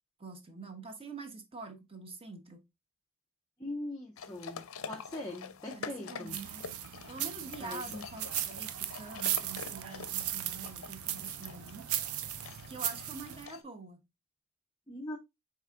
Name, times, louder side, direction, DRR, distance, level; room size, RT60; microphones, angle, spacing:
voice 1, 0.2-2.7 5.7-6.6 7.1-11.8 12.7-14.0, right 3 dB, 25° right, 0.8 m, -46 dB
voice 2, 3.6-6.4 7.6-8.1 14.9-15.2, left 1 dB, 15° left, 0.5 m, -41 dB
sound 1, 4.2-13.6, left 6 dB, 65° left, 0.5 m, -47 dB
sound 2, 6.3-13.5, right 11 dB, 80° right, 0.4 m, -37 dB
4.7 x 2.8 x 3.5 m
head